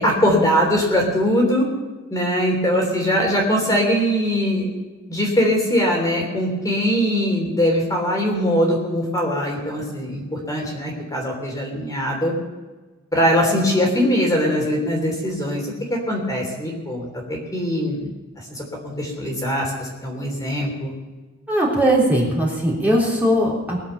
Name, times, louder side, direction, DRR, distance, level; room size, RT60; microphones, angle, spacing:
voice 1, 0.0-1.7 2.1-4.7 5.1-12.3 13.1-18.1 18.5-18.6 19.0-20.9, equal, 15° left, -1 dB, 3.4 m, -21 dB
voice 2, 21.5-23.8, equal, 10° right, -4 dB, 3.5 m, -19 dB
21.0 x 7.9 x 6.8 m, 1.3 s
head